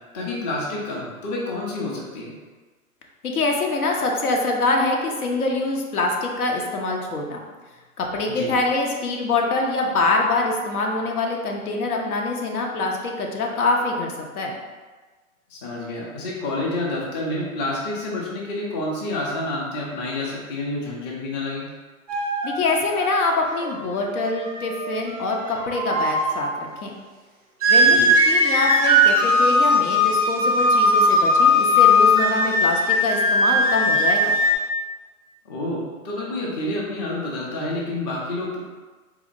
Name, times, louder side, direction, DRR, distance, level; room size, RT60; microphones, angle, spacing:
voice 1, 0.1-2.3 8.3-8.5 15.5-21.7 27.8-28.1 35.4-38.6, left 2 dB, 30° left, -3 dB, 0.6 m, -29 dB
voice 2, 3.2-7.4 8.0-14.1 14.4-14.5 22.4-26.9 27.7-34.4, left 3 dB, 75° left, 1 dB, 0.8 m, -24 dB
sound 1, 22.1-26.4 27.6-34.5, left 1 dB, 30° right, 0.4 m, -19 dB
4.0 x 2.8 x 2.6 m, 1.3 s
hypercardioid pair, 140°, 44 cm